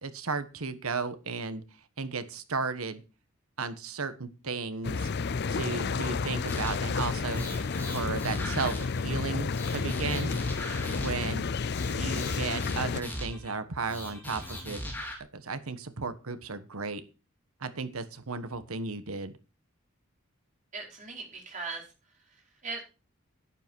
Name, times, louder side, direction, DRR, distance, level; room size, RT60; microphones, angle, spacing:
voice 1, 0.0-1.6 2.0-3.0 3.6-5.1 5.5-7.4 7.9-10.3 11.0-11.4 11.9-14.8 15.3-17.0 17.6-19.3, right 4 dB, 85° right, 11 dB, 1.4 m, -34 dB
sound 1, 4.8-13.0, left 4 dB, 50° left, 0.5 m, -31 dB
sound 2, 6.5-7.0 7.3-9.2 9.5-11.3 11.7-13.5 13.9-15.2, left 1 dB, 10° left, 4.2 m, -39 dB
voice 2, 20.7-21.9 22.2-22.8, right 4 dB, 35° right, 0 dB, 5.1 m, -39 dB
11.5 x 10.0 x 4.6 m, 0.32 s
head